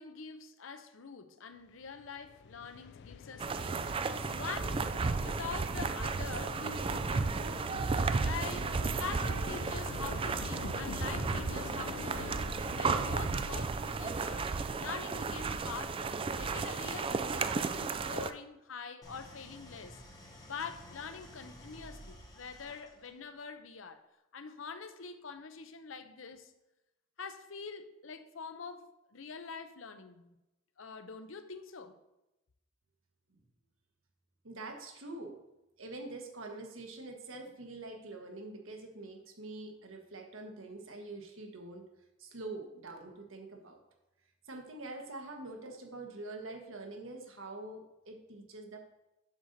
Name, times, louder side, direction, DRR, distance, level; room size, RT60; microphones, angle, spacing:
voice 1, 0.0-3.9 4.3-4.9 5.2-7.5 8.2-12.4 12.8-14.5 14.8-20.0 20.5-24.0 24.3-26.5 27.2-30.4 30.8-32.0, left 5 dB, 75° left, 0.7 m, -45 dB
sound 1, 1.7-13.6, left 6 dB, 55° left, 0.3 m, -46 dB
sound 2, 3.4-18.3, right 4 dB, 25° right, 0.3 m, -34 dB
Idling, 19.0-23.2, equal, 20° left, 1.4 m, -52 dB
voice 2, 34.4-35.4 35.8-41.9 42.2-43.8 44.4-48.8, right 2 dB, 85° right, 1.4 m, -45 dB
7.9 x 4.0 x 6.6 m
head